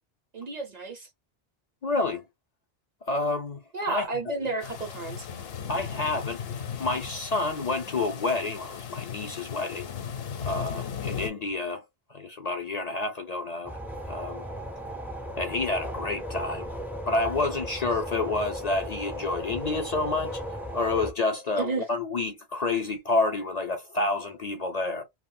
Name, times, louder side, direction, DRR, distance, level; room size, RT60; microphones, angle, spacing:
voice 1, 0.3-1.1 3.7-5.3 21.6-21.9, right 3 dB, 50° right, 0.6 m, -32 dB
voice 2, 1.8-2.2 3.1-3.6 3.9-4.1 4.4-4.5 5.7-6.4 6.8-9.9 10.4-11.8 12.1-13.8 14.1-14.4 15.4-16.7 17.1-20.4 20.7-25.0, left 3 dB, 50° left, 0.5 m, -29 dB
sound 1, 4.6-11.3, left 7 dB, 70° left, 0.9 m, -36 dB
sound 2, 13.6-21.1, equal, 5° right, 0.3 m, -36 dB
2.3 x 2.1 x 3.6 m
omnidirectional pair, 1.1 m